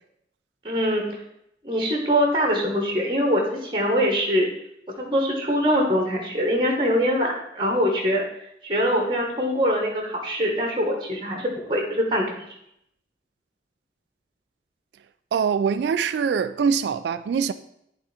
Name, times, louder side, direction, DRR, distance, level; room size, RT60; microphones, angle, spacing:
voice 1, 0.6-1.2 1.6-4.5 5.0-8.2 8.6-12.3, equal, 30° right, 1.3 m, -23 dB
voice 2, 15.3-17.5, right 6 dB, 80° right, 0.3 m, -23 dB
10.5 x 3.8 x 4.3 m
head